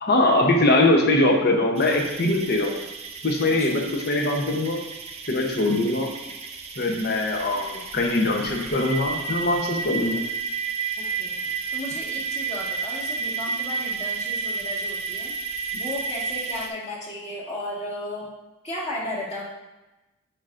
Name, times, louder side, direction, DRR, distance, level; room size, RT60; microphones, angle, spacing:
voice 1, 0.0-2.8 3.2-4.8 5.3-6.1 6.8-10.3, left 2 dB, 50° left, 1 dB, 0.9 m, -22 dB
sound 1, 1.8-16.7, right 5 dB, 30° right, 0.6 m, -32 dB
voice 2, 3.4-3.9 11.2-15.3 15.7-18.3 18.6-19.4, left 1 dB, 30° left, -6 dB, 1.8 m, -35 dB
10.0 x 4.9 x 2.6 m, 1.0 s
head